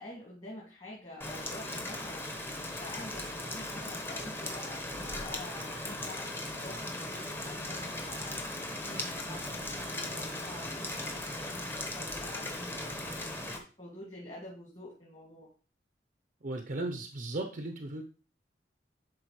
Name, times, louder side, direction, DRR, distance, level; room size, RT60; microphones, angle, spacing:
voice 1, 0.0-2.3 2.6-6.3 6.6-8.3 8.8-13.3 13.8-15.5, left 1 dB, 30° left, -4 dB, 2.2 m, -47 dB
Rain, 1.2-13.6, left 1 dB, 15° left, 1.1 m, -38 dB
voice 2, 16.4-18.0, right 2 dB, 50° right, 3 dB, 0.7 m, -36 dB
11.0 x 4.4 x 3.1 m, 0.36 s
head